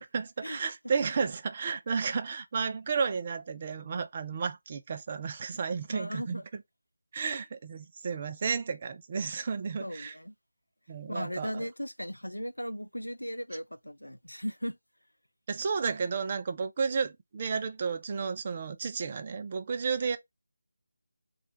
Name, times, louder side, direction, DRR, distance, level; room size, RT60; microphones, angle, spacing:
voice 1, 0.1-6.6 7.1-10.1 10.9-11.7 15.5-20.2, right 5 dB, 30° right, 0.4 m, -32 dB
voice 2, 5.9-6.4 7.2-7.3 9.8-10.3 11.1-14.8, equal, 85° left, 0.5 m, -37 dB
3.2 x 2.4 x 2.9 m
figure-of-eight pair, 160°, 0 cm